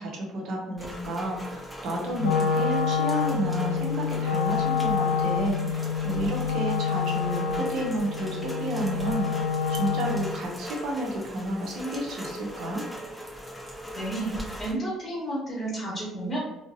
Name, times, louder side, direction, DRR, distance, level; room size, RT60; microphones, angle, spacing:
voice 1, 0.0-12.8, right 1 dB, 55° right, 0 dB, 0.8 m, -31 dB
Rain, 0.8-14.7, equal, ahead, 0.7 m, -40 dB
Wind instrument woodwind instrument, 2.2-10.4, left 5 dB, 75° left, 0.3 m, -27 dB
voice 2, 13.9-16.4, right 1 dB, 15° left, -6 dB, 1.3 m, -31 dB
3.8 x 2.1 x 2.5 m, 0.96 s
figure-of-eight pair, 55°, 0 cm